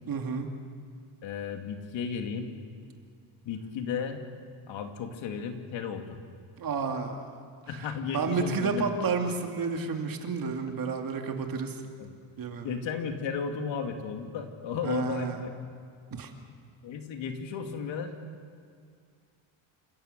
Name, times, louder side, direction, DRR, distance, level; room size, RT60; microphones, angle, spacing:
voice 1, 0.1-0.5 6.6-7.3 7.8-11.8 12.4-12.7 14.8-15.4 16.1-16.3, right 5 dB, 45° right, 3 dB, 2.5 m, -31 dB
voice 2, 1.2-2.5 3.4-4.2 4.7-6.2 7.7-9.0 12.0-12.2 12.6-15.5 16.8-18.1, left 6 dB, 65° left, 4 dB, 2.6 m, -34 dB
28.5 x 16.5 x 6.8 m, 2.2 s
cardioid pair, 120°, 49 cm